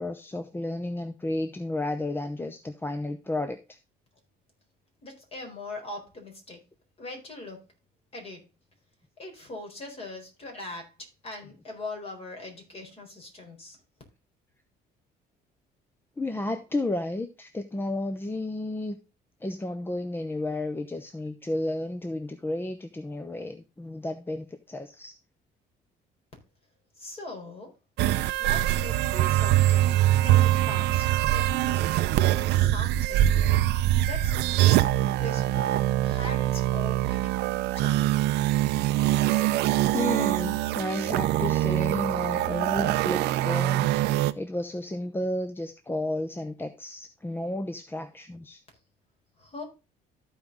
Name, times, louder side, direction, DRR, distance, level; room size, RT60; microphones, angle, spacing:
voice 1, 0.0-3.8 16.2-19.0 19.4-25.2 39.9-48.6, left 1 dB, 15° left, 0.8 m, -32 dB
voice 2, 5.0-6.6 7.0-7.6 8.1-8.5 9.2-13.8 26.9-27.8 28.4-32.0 32.5-33.4 34.0-37.4 37.7-38.2 49.4-49.6, left 2 dB, 35° left, 4.2 m, -41 dB
sound 1, 28.0-44.3, right 14 dB, 85° right, 0.6 m, -24 dB
13.5 x 4.8 x 3.9 m
cardioid pair, 110°, 17 cm